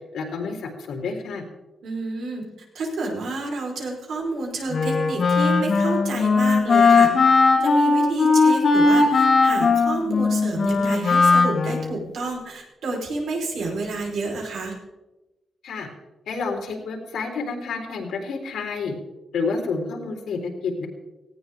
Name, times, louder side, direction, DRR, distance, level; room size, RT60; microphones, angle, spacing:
voice 1, 0.1-1.4 15.6-15.9 16.3-18.9 19.3-20.9, left 4 dB, 90° left, 1 dB, 3.9 m, -29 dB
voice 2, 1.8-7.1 7.6-14.7, right 2 dB, 70° right, 0 dB, 4.6 m, -30 dB
Wind instrument woodwind instrument, 4.7-12.0, left 4 dB, 45° left, 3.3 m, -18 dB
18.5 x 17.5 x 3.7 m, 1.1 s
wide cardioid pair, 175°, 0 cm